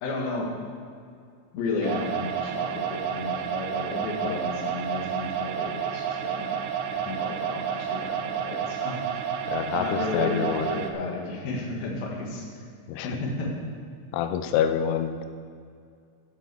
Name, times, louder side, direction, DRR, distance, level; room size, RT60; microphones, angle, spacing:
voice 1, 0.0-0.5 1.5-6.6 6.9-9.2 9.7-12.6 13.0-13.5, left 3 dB, 60° left, -1 dB, 3.2 m, -33 dB
sound 1, 1.8-10.9, right 8 dB, 90° right, 2.1 m, -30 dB
voice 2, 9.5-10.7 12.9-13.1 14.1-15.2, left 9 dB, 90° left, 9 dB, 2.3 m, -26 dB
11.0 x 8.0 x 6.8 m, 2.3 s
omnidirectional pair, 5.4 m